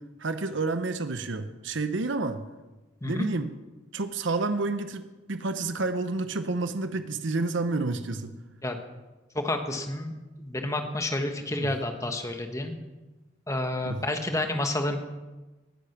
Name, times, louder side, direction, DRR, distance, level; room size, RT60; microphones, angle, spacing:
voice 1, 0.2-2.4 3.0-3.5 3.9-8.3 11.6-11.7 13.8-14.0, right 3 dB, 70° right, 10 dB, 0.8 m, -29 dB
voice 2, 9.3-12.7 13.5-15.0, left 1 dB, 15° left, 5 dB, 1.2 m, -30 dB
19.0 x 8.5 x 5.9 m, 1.2 s
head